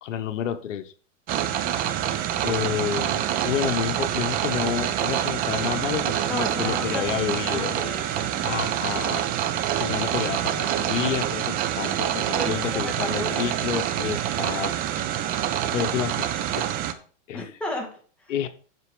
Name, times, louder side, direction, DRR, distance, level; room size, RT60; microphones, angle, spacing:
voice 1, 0.0-0.9 2.4-7.7 8.4-9.2 9.8-15.1 15.7-16.7 17.3-17.5 18.3-18.5, left 9 dB, 75° left, 9 dB, 1.1 m, -29 dB
sound 1, 1.3-16.9, right 11 dB, 25° right, 0.6 m, -26 dB
voice 2, 6.2-8.5 11.8-13.4 17.3-18.3, left 1 dB, 5° left, -1 dB, 2.0 m, -35 dB
8.1 x 6.2 x 5.0 m, 0.42 s
hypercardioid pair, 140°, 38 cm